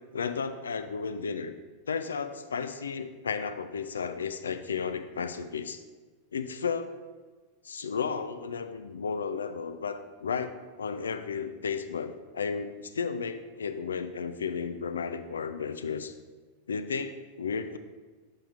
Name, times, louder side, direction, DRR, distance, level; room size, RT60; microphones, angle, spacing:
voice 1, 0.1-1.5 1.9-5.8 6.3-6.9 7.6-16.1 16.7-17.8, left 5 dB, 70° left, 10 dB, 0.3 m, -33 dB
7.5 x 5.6 x 2.5 m, 1.3 s
figure-of-eight pair, 90°, 0 cm